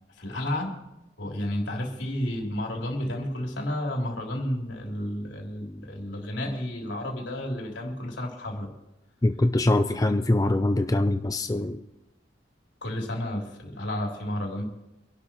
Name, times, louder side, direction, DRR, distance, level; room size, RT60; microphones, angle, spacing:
voice 1, 0.2-0.8 1.2-8.7 12.8-14.6, left 1 dB, 80° left, 0 dB, 3.5 m, -31 dB
voice 2, 9.2-11.8, left 1 dB, 20° left, 7 dB, 0.5 m, -23 dB
25.5 x 11.5 x 3.1 m, 0.93 s
head